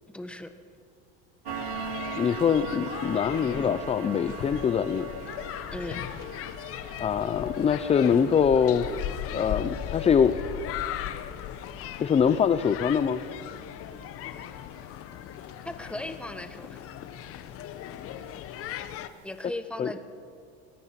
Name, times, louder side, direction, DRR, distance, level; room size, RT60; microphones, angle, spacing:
voice 1, 0.1-0.5 5.7-6.1 15.6-16.9 19.2-20.0, left 1 dB, 5° left, 8 dB, 1.3 m, -37 dB
sound 1, 1.5-19.1, left 11 dB, 50° left, 1.1 m, -37 dB
sound 2, 1.5-16.6 16.9-17.1 17.6-17.7 18.1-18.2 18.7-18.8 19.1-19.2, right 7 dB, 70° right, 1.6 m, -43 dB
voice 2, 2.2-5.1 7.0-8.9 9.3-10.4 12.0-13.2 19.8-19.9, left 7 dB, 20° left, 12 dB, 0.6 m, -23 dB
25.0 x 18.5 x 5.9 m, 2.3 s
supercardioid pair, 120°, 29 cm